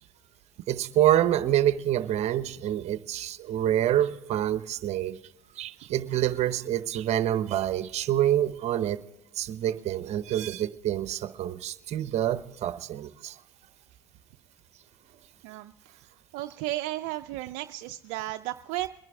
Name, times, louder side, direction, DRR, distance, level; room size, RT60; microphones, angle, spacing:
voice 1, 0.7-5.2 5.6-9.0 9.3-13.4, right 12 dB, 50° right, 0.9 m, -27 dB
voice 2, 15.4-16.0 16.3-18.9, right 16 dB, 70° right, 0.5 m, -34 dB
22.5 x 10.5 x 3.5 m
supercardioid pair, 85°, 14 cm